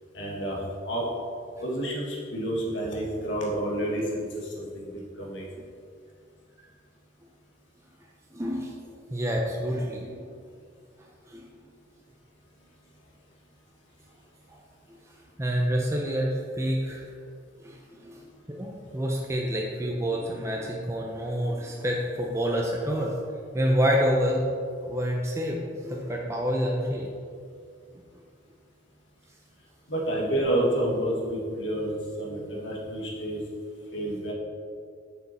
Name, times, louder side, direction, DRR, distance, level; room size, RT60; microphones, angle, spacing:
voice 1, 0.1-1.0 1.6-5.5 29.9-31.9 32.2-33.4 33.9-34.3, right 1 dB, 70° left, -3 dB, 1.8 m, -29 dB
voice 2, 8.3-8.8 9.1-10.2 11.3-11.5 14.5-14.6 15.4-17.0 17.6-23.1 23.5-27.1, equal, 15° right, -1 dB, 0.6 m, -28 dB
7.2 x 6.1 x 4.2 m, 2.3 s
head